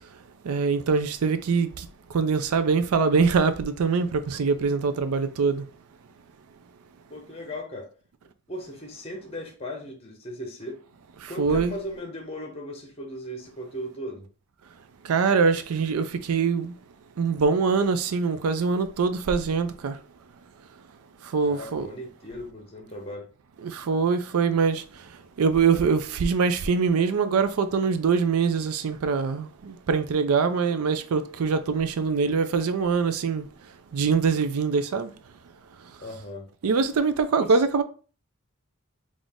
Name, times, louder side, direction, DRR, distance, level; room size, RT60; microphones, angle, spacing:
voice 1, 0.5-1.7 2.1-5.6 11.4-11.8 15.1-16.7 17.2-19.9 21.3-21.9 23.6-24.8 25.4-33.4 33.9-35.1 36.6-37.8, right 5 dB, 80° right, 0.4 m, -23 dB
voice 2, 7.1-7.9 8.5-10.8 11.3-14.3 21.5-23.3 36.0-36.5 37.4-37.6, equal, 25° left, 0.9 m, -37 dB
3.9 x 2.5 x 3.5 m
head